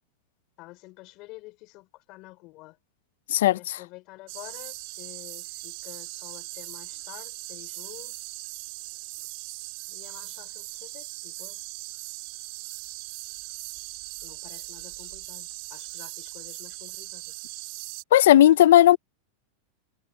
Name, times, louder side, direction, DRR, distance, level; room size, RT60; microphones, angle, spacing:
voice 1, 0.6-2.8 3.5-8.3 9.9-11.6 14.2-17.3, left 21 dB, 35° left, 3.6 m, -48 dB
sound 1, 4.3-18.0, right 26 dB, 45° right, 3.3 m, -39 dB
voice 2, 18.1-19.0, left 13 dB, 70° left, 0.5 m, -15 dB
supercardioid pair, 175°, 0 cm